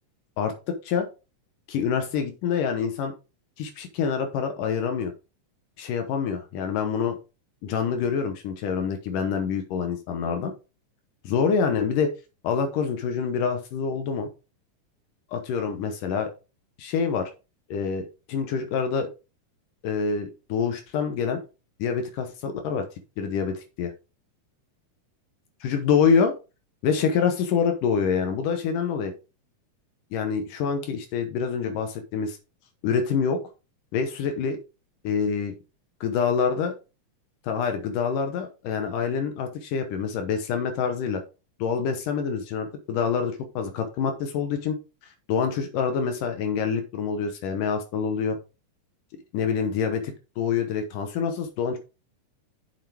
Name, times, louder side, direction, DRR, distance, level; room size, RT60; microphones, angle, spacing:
voice 1, 0.4-1.1 1.7-3.1 3.6-5.1 5.8-7.2 7.6-10.5 11.2-12.1 12.4-14.3 15.3-16.3 16.8-17.3 17.7-19.1 19.8-21.4 21.8-22.9 23.2-23.9 25.6-26.4 26.8-29.1 30.1-32.4 32.8-33.4 33.9-34.6 35.0-35.5 36.0-36.7 37.4-41.2 41.6-44.8 45.3-48.4 49.3-50.0 50.4-51.8, left 6 dB, 75° left, 6 dB, 2.6 m, -26 dB
7.5 x 7.5 x 3.5 m, 0.30 s
omnidirectional pair, 3.8 m